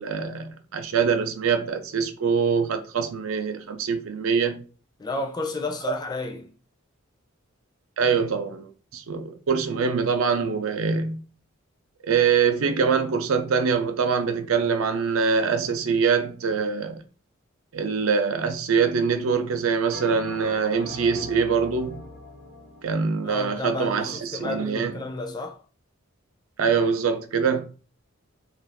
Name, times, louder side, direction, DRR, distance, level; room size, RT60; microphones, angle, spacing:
voice 1, 0.0-4.6 8.0-11.2 12.0-17.0 17.7-22.0 22.8-25.0 26.6-27.6, right 5 dB, 80° right, 0.5 m, -24 dB
voice 2, 5.0-6.5 23.2-25.6, left 2 dB, 20° left, 0.4 m, -32 dB
Bell, 19.9-24.5, left 1 dB, 65° left, 0.9 m, -42 dB
2.5 x 2.3 x 3.3 m
head